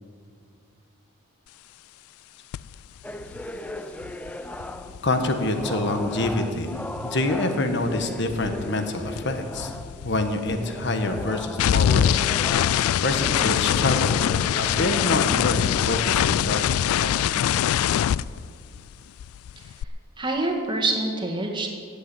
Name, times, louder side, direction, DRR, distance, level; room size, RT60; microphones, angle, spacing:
sound 1, 2.5-2.7 3.0-7.4 7.6-18.9 19.2-19.8, left 10 dB, 90° left, 0.3 m, -24 dB
sound 2, 3.0-5.1 5.5-10.1 10.5-15.9, left 1 dB, 5° left, 0.5 m, -38 dB
voice 1, 5.0-6.7 7.0-9.7 10.0-12.1 13.0-14.3 14.6-17.3, left 2 dB, 55° left, 6 dB, 1.4 m, -26 dB
voice 2, 20.2-21.8, right 2 dB, 20° right, 1 dB, 1.9 m, -26 dB
15.5 x 8.2 x 8.9 m, 2.3 s
head